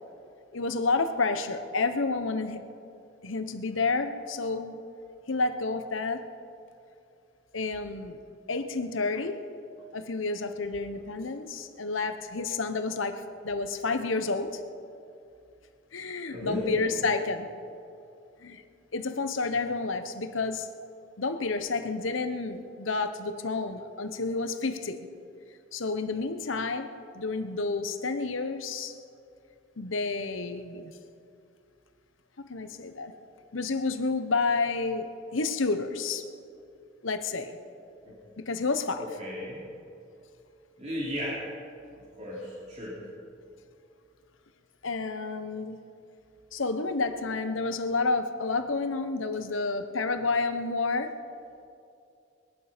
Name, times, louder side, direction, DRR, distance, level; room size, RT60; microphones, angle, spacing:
voice 1, 0.5-2.6 3.2-4.8 5.3-6.3 7.5-8.2 8.5-9.5 9.9-14.6 15.9-17.5 18.4-18.6 18.9-20.7 21.2-25.1 25.7-28.9 29.8-30.9 32.4-33.1 33.5-36.3 37.0-37.6 38.4-39.0 44.8-45.8 46.5-51.1, left 3 dB, 80° left, 9 dB, 1.0 m, -30 dB
voice 2, 16.3-17.0 19.5-19.6 38.0-38.2 39.0-39.6 40.8-41.5 42.0-43.0, left 1 dB, 35° right, -6 dB, 3.1 m, -35 dB
21.0 x 11.5 x 5.2 m, 2.5 s
head